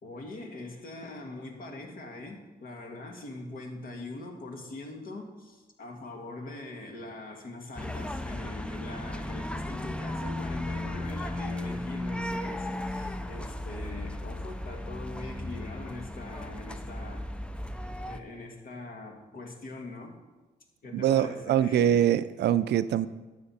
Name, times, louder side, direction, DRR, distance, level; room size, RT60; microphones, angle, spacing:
voice 1, 0.0-17.3 18.1-20.2 20.8-22.1, left 2 dB, 55° left, 2 dB, 1.7 m, -42 dB
sound 1, 7.8-18.2, left 1 dB, 5° left, 0.5 m, -35 dB
voice 2, 20.9-23.1, right 10 dB, 85° right, 14 dB, 0.5 m, -24 dB
12.0 x 7.9 x 4.3 m, 1.2 s
cardioid pair, 105°, 17 cm